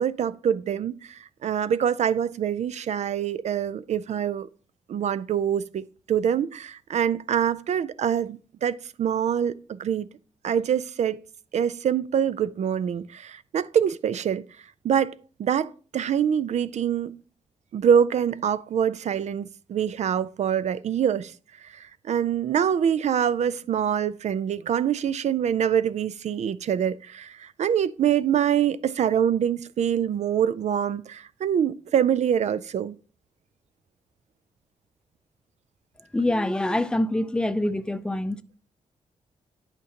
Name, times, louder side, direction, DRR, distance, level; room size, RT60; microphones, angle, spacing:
voice 1, 0.0-4.5 4.9-10.1 10.4-11.2 11.5-14.4 14.8-17.2 17.7-21.3 21.6-33.0, right 8 dB, 65° right, 0.4 m, -25 dB
voice 2, 36.1-38.4, left 1 dB, 5° left, 0.5 m, -25 dB
11.0 x 5.1 x 2.9 m
cardioid pair, 80°, 13 cm